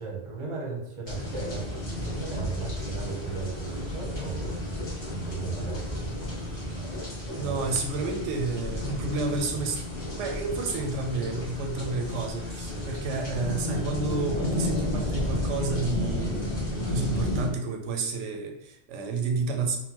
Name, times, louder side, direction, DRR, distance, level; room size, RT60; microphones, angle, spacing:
voice 1, 0.0-4.4 5.1-6.9 7.4-7.7, right 5 dB, 35° right, -1 dB, 0.7 m, -36 dB
sound 1, 1.1-17.5, left 1 dB, 25° left, 0.9 m, -32 dB
sound 2, 1.4-12.4, equal, 65° left, 1.2 m, -42 dB
voice 2, 7.4-19.8, right 3 dB, 90° right, 3 dB, 0.9 m, -31 dB
3.8 x 2.1 x 2.8 m, 0.78 s
omnidirectional pair, 1.2 m